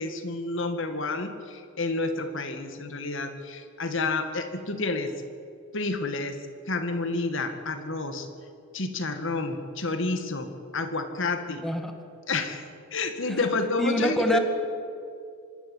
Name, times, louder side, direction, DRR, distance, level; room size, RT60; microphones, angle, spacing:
voice 1, 0.0-5.1 5.7-6.4 6.7-8.3 8.7-10.5 10.7-11.6 12.3-12.6 12.9-14.4, left 3 dB, 65° left, 8 dB, 1.9 m, -29 dB
voice 2, 13.8-14.4, equal, ahead, 5 dB, 1.8 m, -26 dB
25.5 x 13.0 x 9.5 m, 2.4 s
head